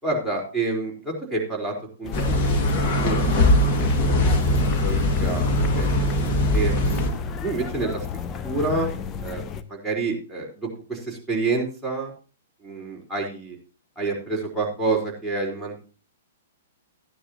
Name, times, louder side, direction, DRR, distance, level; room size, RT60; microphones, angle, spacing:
voice 1, 0.0-1.7 2.0-2.5 2.8-4.3 4.8-5.5 5.8-6.1 6.5-7.1 7.4-8.0 8.4-8.9 9.2-9.4 9.7-12.1 12.6-13.6 14.0-15.8, right 3 dB, ahead, -1 dB, 3.8 m, -28 dB
sound 1, 2.0-9.6, left 6 dB, 25° left, 0.7 m, -33 dB
sound 2, 2.1-7.1, left 1 dB, 40° left, 1.8 m, -21 dB
14.5 x 10.0 x 2.8 m, 0.36 s
figure-of-eight pair, 115°, 0 cm